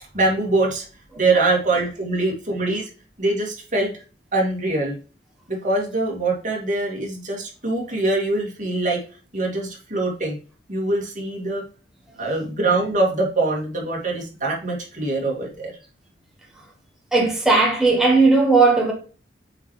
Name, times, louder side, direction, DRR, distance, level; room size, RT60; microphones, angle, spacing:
voice 1, 0.1-0.8 1.2-2.9 3.2-3.9 4.3-5.0 5.5-9.0 9.3-10.4 10.7-11.6 12.2-15.7, right 2 dB, 45° right, 2.4 m, -23 dB
voice 2, 17.1-18.9, right 3 dB, 5° right, 1.3 m, -16 dB
7.7 x 4.7 x 3.2 m
head